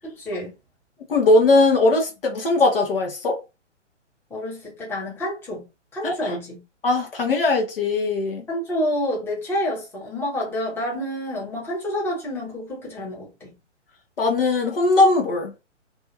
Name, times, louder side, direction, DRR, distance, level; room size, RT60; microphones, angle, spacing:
voice 1, 0.0-0.5 4.3-5.7 5.9-6.6 8.5-13.5, left 1 dB, 5° left, 1.0 m, -28 dB
voice 2, 1.1-3.4 6.0-6.4 6.8-8.4 14.2-15.5, left 2 dB, 50° left, 0.8 m, -19 dB
2.6 x 2.4 x 2.8 m
figure-of-eight pair, 130°, 36 cm